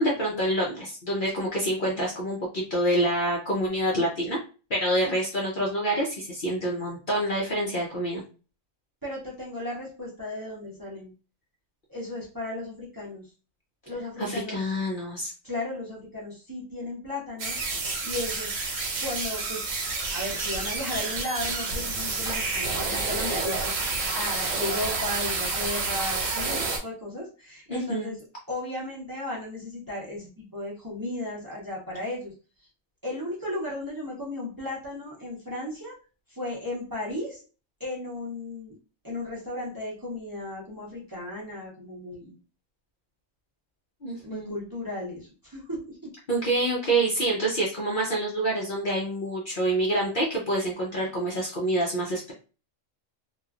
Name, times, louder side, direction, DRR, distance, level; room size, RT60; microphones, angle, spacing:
voice 1, 0.0-4.4 4.7-8.2 14.2-15.3 27.7-28.1 44.0-44.6 46.3-52.3, right 1 dB, 50° left, -3 dB, 0.7 m, -27 dB
voice 2, 9.0-11.1 11.9-13.3 13.8-14.6 15.4-18.6 19.0-19.6 20.1-28.2 28.5-32.3 33.0-35.9 36.3-37.4 37.8-38.7 39.0-42.4 44.2-46.1, left 1 dB, 20° right, -5 dB, 0.8 m, -35 dB
sound 1, 17.4-26.8, right 3 dB, 85° right, 1.2 m, -29 dB
3.0 x 2.3 x 2.4 m, 0.34 s
omnidirectional pair, 1.3 m